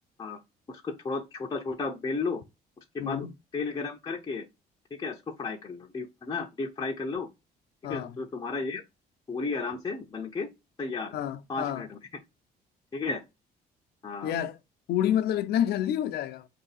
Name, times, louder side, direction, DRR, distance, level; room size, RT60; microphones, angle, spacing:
voice 1, 0.7-2.4 2.9-3.3 3.5-4.5 5.0-7.3 7.9-8.8 9.3-10.5 10.8-11.1 11.5-12.0 12.9-13.2 14.0-14.3, left 4 dB, 25° left, 0.7 m, -33 dB
voice 2, 3.0-3.3 7.8-8.2 11.1-11.8 14.2-14.6 14.9-16.5, left 10 dB, 70° left, 0.6 m, -28 dB
3.7 x 2.8 x 4.0 m
cardioid pair, 110°, 17 cm